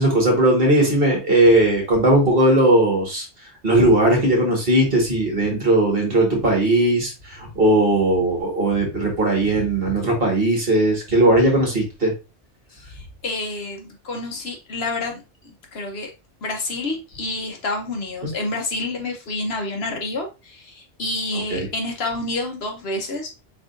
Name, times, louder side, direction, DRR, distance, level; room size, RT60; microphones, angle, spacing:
voice 1, 0.0-3.2 3.6-12.1 21.5-21.7, right 1 dB, 55° right, 1.8 m, -18 dB
voice 2, 12.7-16.1 16.4-23.4, left 2 dB, 60° left, 1.2 m, -29 dB
4.7 x 3.8 x 2.5 m
omnidirectional pair, 1.2 m